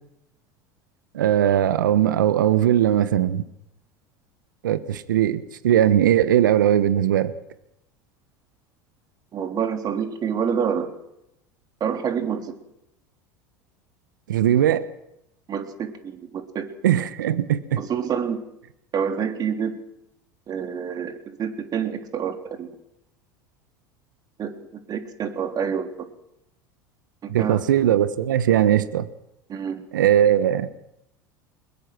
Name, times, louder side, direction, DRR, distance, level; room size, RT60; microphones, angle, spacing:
voice 1, 1.1-3.4 4.6-7.3 14.3-14.8 16.8-17.8 27.3-29.1 29.9-30.7, right 11 dB, 80° right, 15 dB, 1.2 m, -19 dB
voice 2, 9.3-10.9 11.8-12.6 15.5-16.7 17.8-18.4 18.9-19.8 20.5-22.7 24.4-26.1 27.2-27.6 29.5-29.8, right 7 dB, 40° right, 7 dB, 3.2 m, -27 dB
22.5 x 21.0 x 6.2 m, 0.81 s
hypercardioid pair, 85°, 10 cm